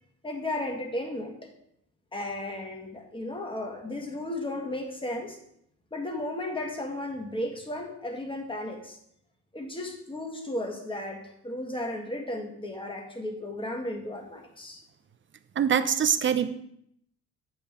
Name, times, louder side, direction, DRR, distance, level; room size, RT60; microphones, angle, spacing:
voice 1, 0.2-1.5 2.1-5.4 5.9-9.0 9.5-14.8, left 1 dB, 15° left, 3 dB, 1.7 m, -34 dB
voice 2, 15.6-16.5, right 8 dB, 40° right, 11 dB, 0.5 m, -23 dB
8.4 x 7.1 x 3.5 m, 0.72 s
cardioid pair, 90°, 30 cm